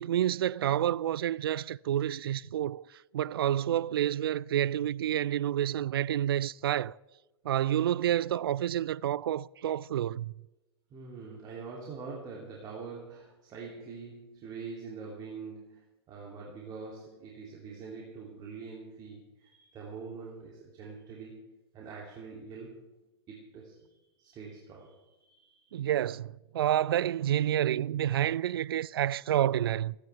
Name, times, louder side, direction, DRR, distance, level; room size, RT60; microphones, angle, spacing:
voice 1, 0.0-7.0 7.4-10.3 25.7-30.0, right 11 dB, 60° right, 0.4 m, -29 dB
voice 2, 10.9-21.5 21.7-22.8 23.3-25.7, right 4 dB, 30° right, 2.8 m, -44 dB
29.5 x 10.0 x 3.4 m
figure-of-eight pair, 105°, 14 cm